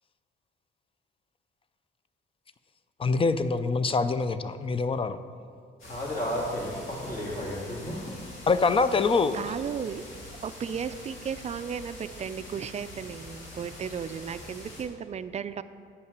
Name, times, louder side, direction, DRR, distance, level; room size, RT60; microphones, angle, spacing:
voice 1, 3.0-5.2 8.5-9.4, left 4 dB, 25° left, 12 dB, 0.4 m, -24 dB
sound 1, 5.8-14.8, left 1 dB, 90° left, 2.1 m, -45 dB
voice 2, 5.8-8.2, equal, 45° left, -4 dB, 2.2 m, -33 dB
voice 3, 9.3-10.0 10.4-15.6, right 7 dB, 35° right, 13 dB, 0.4 m, -35 dB
8.4 x 5.5 x 6.7 m, 2.2 s
cardioid pair, 90°, 20 cm